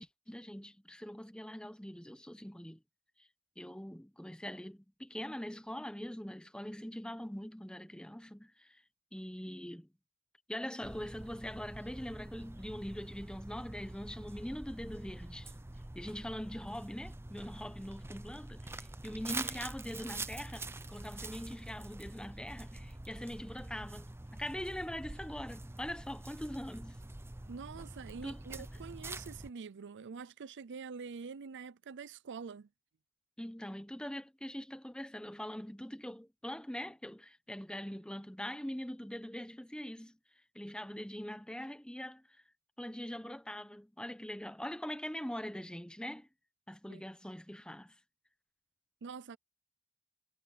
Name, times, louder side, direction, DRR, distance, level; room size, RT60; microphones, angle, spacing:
voice 1, 0.0-2.8 3.6-8.8 9.1-9.9 10.5-15.5 15.9-27.0 28.1-28.4 33.4-40.2 40.5-42.2 42.8-46.3 46.7-47.9, equal, 5° left, 1.1 m, -43 dB
sound 1, 10.8-29.5, right 2 dB, 10° right, 0.6 m, -46 dB
voice 2, 27.5-32.7 46.9-47.0 49.0-49.4, right 5 dB, 55° right, 0.5 m, -45 dB
head